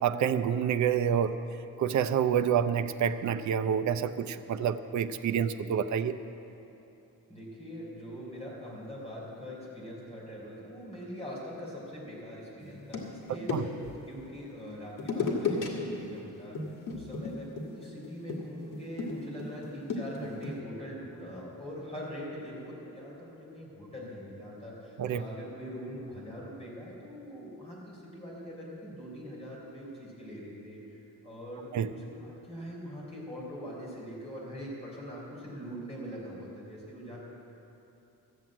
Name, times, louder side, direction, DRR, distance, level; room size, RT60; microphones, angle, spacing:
voice 1, 0.0-1.4 1.8-6.1 13.5-13.6 25.0-25.2 31.7-31.9, right 8 dB, 60° right, 10 dB, 0.6 m, -28 dB
voice 2, 7.3-13.5 14.1-37.2, equal, 20° left, -5 dB, 3.9 m, -43 dB
sound 1, 12.6-14.0 15.0-15.7 16.0-16.2 16.5-20.6, left 4 dB, 70° left, 1.9 m, -35 dB
13.5 x 7.7 x 8.7 m, 2.9 s
wide cardioid pair, 160°, 33 cm